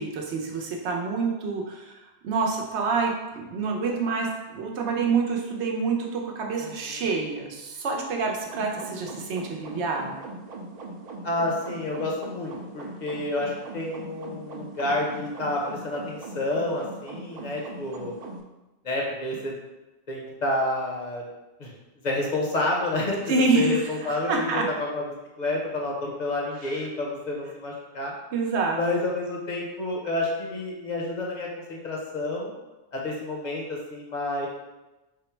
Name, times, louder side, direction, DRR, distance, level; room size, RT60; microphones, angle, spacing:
voice 1, 0.0-2.0 2.2-10.2 23.3-24.7 28.3-28.8, right 4 dB, 80° right, 1 dB, 1.0 m, -27 dB
voice 2, 6.6-7.0 11.2-18.1 18.8-19.5 20.1-21.3 21.6-21.7 22.0-23.2 23.5-25.0 25.4-28.1 28.8-32.5 32.9-34.5, left 2 dB, 45° left, -2 dB, 0.8 m, -29 dB
sound 1, 8.4-18.4, right 2 dB, 60° right, 0.4 m, -40 dB
3.6 x 2.0 x 4.3 m, 1.1 s
omnidirectional pair, 1.1 m